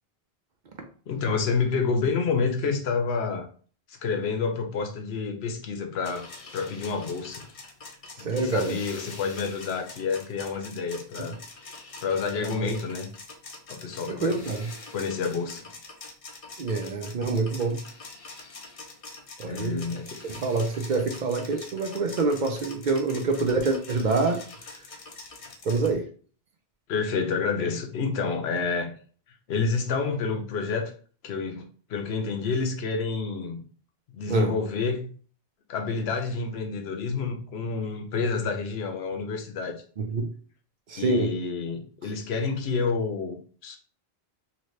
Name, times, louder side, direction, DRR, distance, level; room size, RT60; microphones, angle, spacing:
voice 1, 1.1-3.5 3.9-6.3 6.5-7.4 8.2-11.4 12.0-13.1 13.7-14.4 14.9-15.7 19.5-20.1 26.9-28.9 29.5-30.9 31.2-33.6 34.1-35.1 35.7-39.8 41.0-43.8, left 5 dB, 90° left, 5 dB, 0.9 m, -29 dB
sound 1, 6.0-25.9, left 3 dB, 45° left, 0.5 m, -44 dB
voice 2, 8.2-8.8 11.2-11.3 12.4-12.7 14.1-14.7 16.6-17.8 19.4-19.9 20.4-24.4 25.6-26.1 34.3-34.5 40.0-40.3 40.9-41.3, right 3 dB, 55° right, 5 dB, 0.6 m, -26 dB
2.9 x 2.9 x 3.1 m, 0.42 s
omnidirectional pair, 1.0 m